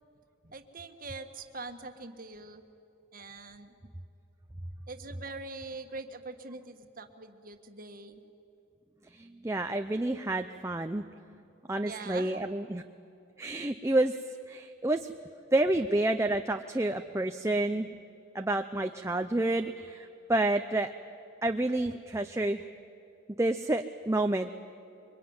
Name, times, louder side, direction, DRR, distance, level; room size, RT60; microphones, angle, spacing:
voice 1, 0.4-2.6 3.1-3.7 4.9-8.2 11.8-12.5, right 3 dB, 45° right, 7 dB, 1.5 m, -43 dB
voice 2, 9.1-11.0 11.7-12.8 13.4-14.2 14.5-15.1 15.5-17.9 18.3-20.9 21.4-22.7 23.4-24.5, right 2 dB, 15° right, 6 dB, 0.6 m, -29 dB
25.5 x 24.0 x 9.6 m, 2.6 s
head